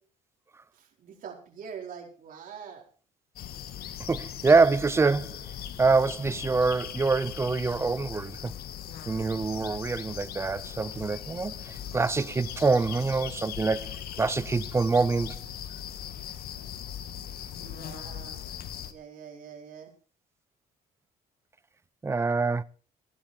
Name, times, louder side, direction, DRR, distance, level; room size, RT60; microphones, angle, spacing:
voice 1, 0.7-2.8 17.6-18.4 18.9-19.9, right 7 dB, 55° right, 4.4 m, -44 dB
sound 1, 3.4-18.9, left 9 dB, 65° left, 1.5 m, -39 dB
voice 2, 4.1-5.4 5.8-8.5 9.1-15.4 22.0-22.6, right 4 dB, 15° right, 0.5 m, -25 dB
16.0 x 11.0 x 4.5 m
cardioid pair, 110°, 17 cm